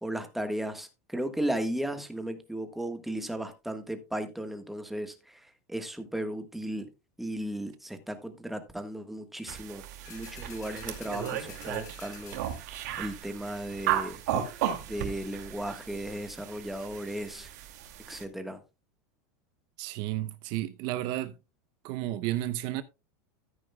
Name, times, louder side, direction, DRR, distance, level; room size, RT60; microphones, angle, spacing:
voice 1, 0.0-6.9 7.2-14.2 14.9-17.5 18.1-18.6, right 1 dB, ahead, 1.4 m, -36 dB
sound 1, 9.5-18.2, right 11 dB, 75° right, 2.2 m, -35 dB
sound 2, 10.0-13.1 13.6-13.7, left 11 dB, 85° left, 2.0 m, -51 dB
voice 2, 19.8-21.3 21.8-22.8, right 15 dB, 50° right, 0.7 m, -32 dB
13.0 x 9.9 x 2.2 m
supercardioid pair, 145°, 9 cm